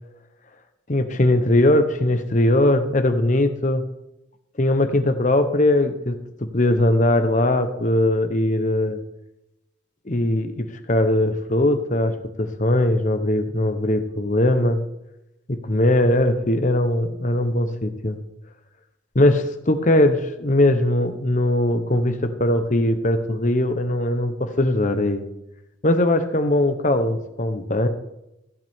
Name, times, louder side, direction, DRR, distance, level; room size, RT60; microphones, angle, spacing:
voice 1, 0.9-3.8 4.6-6.2 6.5-9.0 10.1-12.1 12.4-14.8 15.5-18.2 19.1-25.2 25.8-27.9, left 1 dB, 40° left, 8 dB, 0.9 m, -20 dB
15.0 x 8.2 x 3.6 m, 0.88 s
head